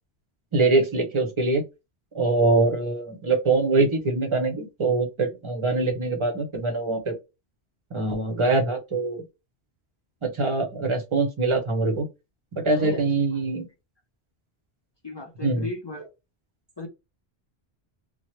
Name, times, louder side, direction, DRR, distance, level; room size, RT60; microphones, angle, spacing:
voice 1, 0.5-1.6 2.1-7.2 7.9-9.2 10.2-12.1 12.6-13.7 15.4-15.7, right 3 dB, 30° right, 0.8 m, -23 dB
voice 2, 12.7-13.0 15.0-16.1 16.8-16.9, left 2 dB, 30° left, 0.5 m, -35 dB
3.0 x 2.1 x 3.0 m
omnidirectional pair, 1.1 m